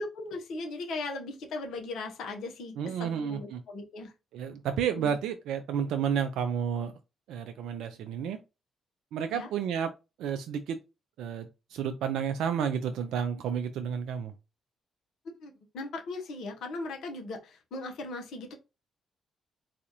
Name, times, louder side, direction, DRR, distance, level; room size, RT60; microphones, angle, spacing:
voice 1, 0.0-4.1 5.0-5.1 9.3-9.5 15.4-18.5, left 2 dB, 70° left, 0.9 m, -38 dB
voice 2, 2.8-3.6 4.3-6.9 7.3-8.4 9.1-9.9 10.2-10.8 11.2-14.3, right 8 dB, 75° right, 0.3 m, -31 dB
4.0 x 2.4 x 2.9 m
hypercardioid pair, 45°, 0 cm